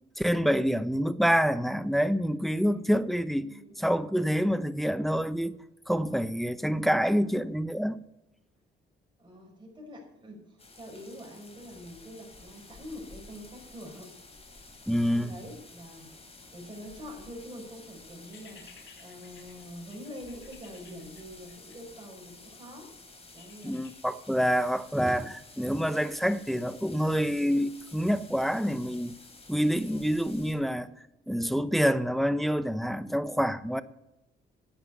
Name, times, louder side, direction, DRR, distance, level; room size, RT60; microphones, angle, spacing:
voice 1, 0.2-3.5 3.8-8.0 14.9-15.4 23.6-29.1 29.5-30.9 31.3-33.8, equal, ahead, 0.8 m, -27 dB
voice 2, 3.4-4.0 7.1-7.5 9.2-14.1 14.9-16.1 16.5-22.9 23.3-23.8, equal, 25° right, 5.8 m, -45 dB
sound 1, 10.6-30.5, left 3 dB, 30° left, 3.7 m, -52 dB
sound 2, 18.3-22.4 23.4-24.0, left 6 dB, 70° left, 3.1 m, -56 dB
11.0 x 8.8 x 8.4 m
cardioid pair, 90°, 20 cm